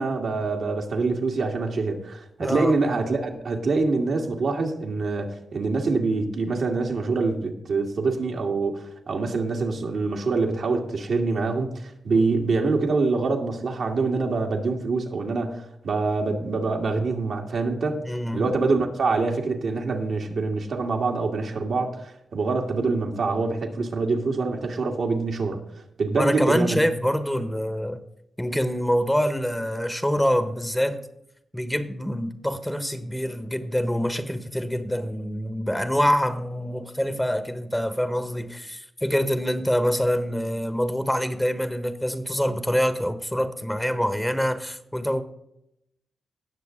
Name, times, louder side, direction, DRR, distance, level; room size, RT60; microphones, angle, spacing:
voice 1, 0.0-18.0 18.3-22.0 22.3-25.6 26.0-26.9, right 3 dB, 70° right, 1 dB, 1.8 m, -25 dB
voice 2, 2.4-2.8 12.1-12.3 18.0-18.5 26.2-28.0 28.4-31.0 31.5-45.2, equal, 5° left, 11 dB, 1.2 m, -25 dB
18.0 x 6.5 x 3.7 m, 0.80 s
supercardioid pair, 45°, 0 cm